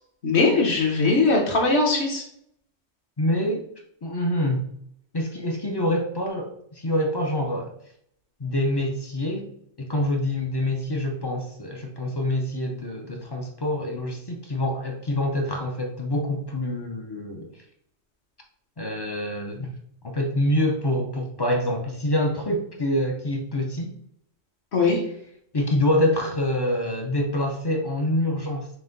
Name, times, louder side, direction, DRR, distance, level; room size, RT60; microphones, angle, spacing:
voice 1, 0.2-2.2 24.7-25.0, left 3 dB, 60° left, 0 dB, 1.3 m, -20 dB
voice 2, 3.2-3.7 4.0-4.7 5.1-7.7 8.4-9.5 9.8-17.5 18.8-19.7 20.0-23.9 25.5-28.7, left 1 dB, 35° left, 2 dB, 0.4 m, -26 dB
6.0 x 2.2 x 3.8 m, 0.70 s
omnidirectional pair, 1.3 m